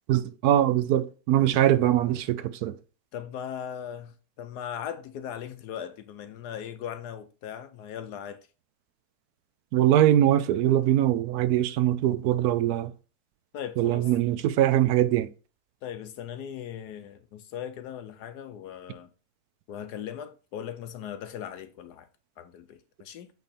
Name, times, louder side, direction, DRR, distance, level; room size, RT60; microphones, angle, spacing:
voice 1, 0.1-2.8 9.7-12.9 13.8-15.3, right 12 dB, 70° right, 1.0 m, -22 dB
voice 2, 1.3-1.7 3.1-8.4 13.5-14.1 15.8-19.1 19.7-22.1 22.4-23.3, left 9 dB, 70° left, 1.1 m, -39 dB
8.2 x 3.5 x 4.3 m
omnidirectional pair, 1.9 m